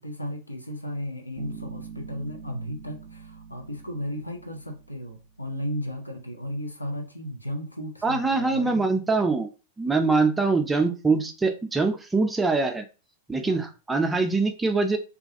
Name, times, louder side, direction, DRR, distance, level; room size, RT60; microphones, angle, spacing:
voice 1, 0.0-8.8 13.4-13.6, equal, 90° left, 2 dB, 0.6 m, -35 dB
Bass guitar, 1.4-5.1, right 7 dB, 70° right, 0.4 m, -44 dB
voice 2, 8.0-9.5 9.8-12.8 13.3-15.0, right 3 dB, 10° right, 6 dB, 0.4 m, -23 dB
2.4 x 2.2 x 2.6 m, 0.31 s
figure-of-eight pair, 95°, 0 cm